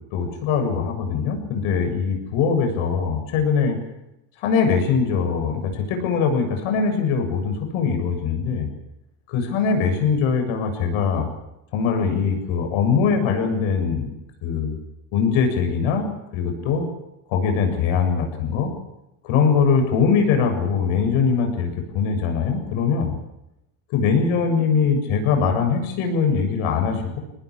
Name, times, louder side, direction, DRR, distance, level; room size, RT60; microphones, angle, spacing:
voice 1, 0.1-3.8 4.4-8.7 9.3-11.3 11.7-14.1 14.4-14.8 15.1-16.1 16.3-16.9 17.3-18.7 19.2-21.7 21.9-23.1 23.9-27.2, left 5 dB, 75° left, 5 dB, 7.4 m, -21 dB
25.0 x 19.0 x 8.7 m, 0.90 s
cardioid pair, 135°, 48 cm